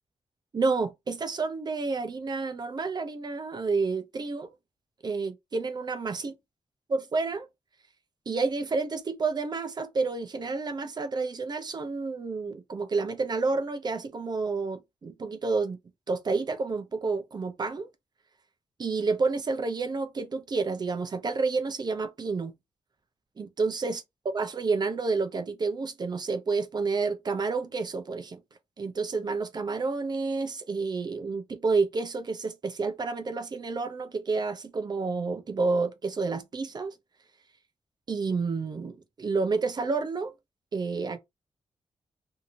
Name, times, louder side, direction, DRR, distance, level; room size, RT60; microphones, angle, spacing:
voice 1, 0.5-4.5 5.0-6.3 6.9-7.5 8.3-15.8 16.1-17.9 18.8-22.5 23.4-28.4 28.8-36.9 38.1-40.3 40.7-41.2, right 4 dB, 40° right, 0.5 m, -29 dB
2.8 x 2.7 x 2.6 m
cardioid pair, 90°, 11 cm